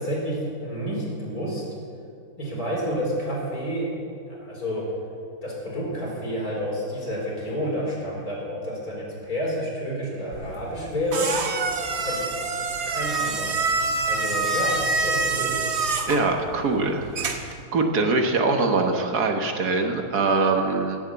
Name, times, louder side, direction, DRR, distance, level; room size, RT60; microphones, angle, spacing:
voice 1, 0.0-1.6 2.4-3.9 4.3-4.9 5.4-11.3 12.0-12.4 12.9-13.6 14.1-15.8, equal, 65° left, -3 dB, 4.5 m, -29 dB
sound 1, 10.3-17.6, right 3 dB, 45° right, 1.2 m, -27 dB
voice 2, 16.1-21.0, right 3 dB, 75° right, 4 dB, 1.8 m, -23 dB
17.0 x 8.2 x 8.1 m, 2.4 s
omnidirectional pair, 1.7 m